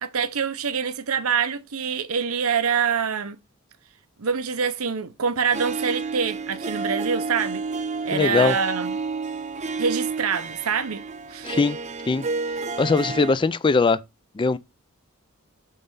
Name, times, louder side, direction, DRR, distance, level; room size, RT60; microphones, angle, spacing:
voice 1, 0.0-3.4 4.2-7.6 8.0-9.0 9.8-11.5, right 6 dB, 85° right, 0.8 m, -25 dB
Harp, 5.5-13.3, right 4 dB, 35° right, 0.6 m, -30 dB
voice 2, 8.1-8.5 11.4-11.8 12.1-12.2 12.8-14.0 14.4-14.6, left 4 dB, 25° left, 0.3 m, -20 dB
7.7 x 3.4 x 5.4 m
head